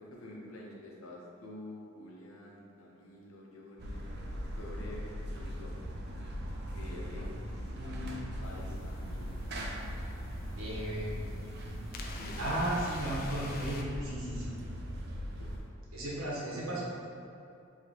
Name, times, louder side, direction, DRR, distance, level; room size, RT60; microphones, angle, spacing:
voice 1, 0.0-4.0 4.6-5.7 6.7-9.4 10.4-11.3 12.1-12.5 15.4-15.7, left 1 dB, 85° left, -3 dB, 0.8 m, -49 dB
sound 1, 3.8-15.6, equal, 55° right, 0.5 m, -40 dB
voice 2, 7.5-8.2 10.6-11.2 12.4-14.5 15.9-16.8, right 1 dB, 80° right, -6 dB, 1.2 m, -35 dB
sound 2, 8.4-13.8, left 3 dB, 45° left, 0.4 m, -49 dB
5.0 x 2.9 x 2.9 m, 2.7 s
head